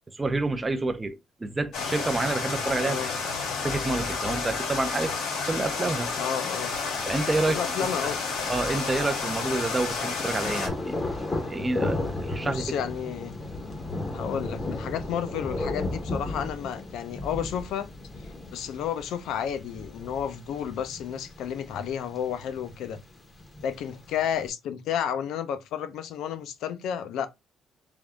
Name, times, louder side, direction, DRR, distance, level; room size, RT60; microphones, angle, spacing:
voice 1, 0.1-3.1 3.6-5.1 5.5-6.1 7.1-7.6 8.5-11.2 11.5-12.7, right 2 dB, 15° right, 0.4 m, -28 dB
sound 1, 1.7-10.7, left 4 dB, 85° left, 1.9 m, -31 dB
voice 2, 2.8-3.1 6.2-6.7 7.5-8.2 12.4-13.4 14.1-17.9 18.5-23.0 23.6-27.3, left 9 dB, 70° left, 0.5 m, -31 dB
Thunder, 6.5-24.5, left 2 dB, 20° left, 0.7 m, -36 dB
3.5 x 2.6 x 3.4 m
cardioid pair, 165°, 0 cm